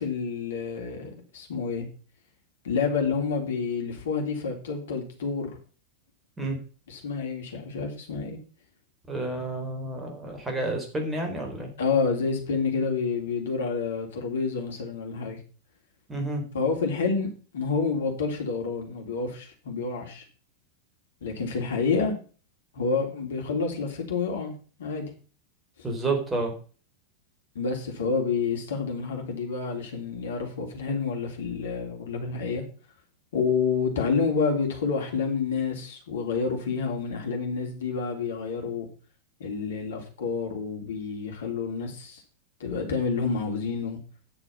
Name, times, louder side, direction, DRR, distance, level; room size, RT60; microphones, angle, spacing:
voice 1, 0.0-1.8 2.6-5.6 6.9-8.4 11.8-15.4 16.5-20.2 21.2-22.1 22.7-25.1 27.5-32.6 33.3-38.9 39.4-42.2 42.6-44.0, left 5 dB, 60° left, 3 dB, 3.2 m, -28 dB
voice 2, 9.1-11.7 16.1-16.4 25.8-26.5, right 2 dB, 15° right, 2 dB, 4.0 m, -30 dB
9.6 x 6.9 x 5.7 m, 0.38 s
figure-of-eight pair, 90°, 0 cm